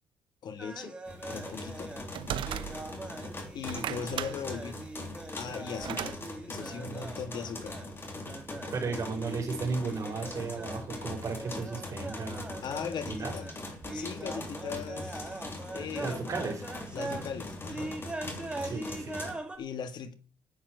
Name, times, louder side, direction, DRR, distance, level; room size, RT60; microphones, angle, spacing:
voice 1, 0.4-0.9 1.3-1.9 3.5-4.8 5.4-6.2 6.5-7.8 12.6-13.5 13.9-15.4 15.7-16.3 16.9-17.9 18.6-18.8 19.6-20.1, left 6 dB, 55° left, 1.7 m, -39 dB
sound 1, 0.6-17.3 17.7-19.6, right 2 dB, 10° right, 2.3 m, -42 dB
sound 2, 1.1-19.3, left 2 dB, 25° left, 3.4 m, -41 dB
sound 3, 1.4-3.1 3.5-6.2, right 11 dB, 65° right, 0.9 m, -37 dB
voice 2, 8.7-12.4 13.0-13.3 16.0-16.6 18.6-19.2, right 4 dB, 35° right, 5.5 m, -34 dB
10.5 x 8.9 x 8.0 m
cardioid pair, 140°, 9 cm